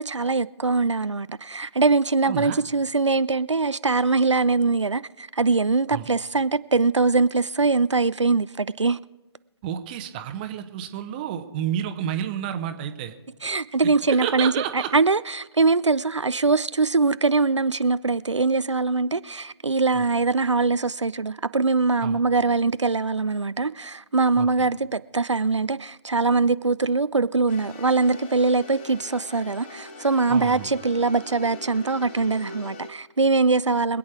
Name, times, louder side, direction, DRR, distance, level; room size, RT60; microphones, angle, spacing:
voice 1, 0.0-9.0 13.4-34.0, right 3 dB, 85° right, 0.4 m, -22 dB
voice 2, 2.2-2.6 5.9-6.1 9.6-13.1 13.8-14.9 19.9-20.0 22.0-22.2 24.4-24.7 30.3-30.7, right 10 dB, 20° right, 0.9 m, -30 dB
sound 1, 27.5-32.9, left 2 dB, 25° left, 1.3 m, -41 dB
25.0 x 8.7 x 4.7 m
figure-of-eight pair, 140°, 15 cm